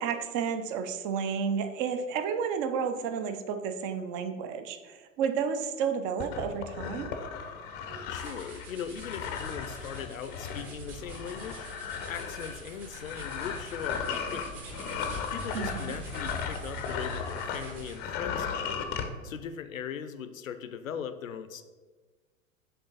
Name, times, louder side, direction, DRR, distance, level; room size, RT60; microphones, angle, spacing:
voice 1, 0.0-7.2 15.5-15.9, right 6 dB, 25° right, 8 dB, 0.4 m, -31 dB
sound 1, 6.2-17.7 17.9-19.1, left 7 dB, 25° left, 0.5 m, -36 dB
sound 2, 7.7-18.2, right 2 dB, 45° right, 1.6 m, -45 dB
voice 2, 8.1-11.7 12.1-14.6 15.3-18.8 19.2-21.6, left 8 dB, 75° left, 10 dB, 0.6 m, -39 dB
6.8 x 3.6 x 4.0 m, 1.4 s
figure-of-eight pair, 90°, 40 cm